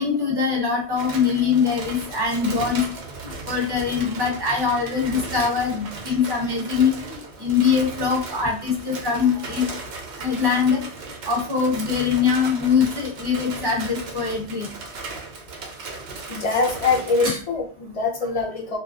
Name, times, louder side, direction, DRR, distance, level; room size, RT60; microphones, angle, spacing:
voice 1, 0.0-2.8 3.5-6.9 7.4-9.6 10.2-10.8 11.3-14.7 16.5-16.6 17.2-17.4, left 6 dB, 25° right, -3 dB, 0.7 m, -22 dB
sound 1, 1.0-17.3, right 3 dB, 70° right, 0.9 m, -36 dB
voice 2, 16.3-18.8, left 4 dB, 50° left, -1 dB, 0.4 m, -23 dB
2.3 x 2.3 x 2.3 m, 0.40 s
omnidirectional pair, 1.1 m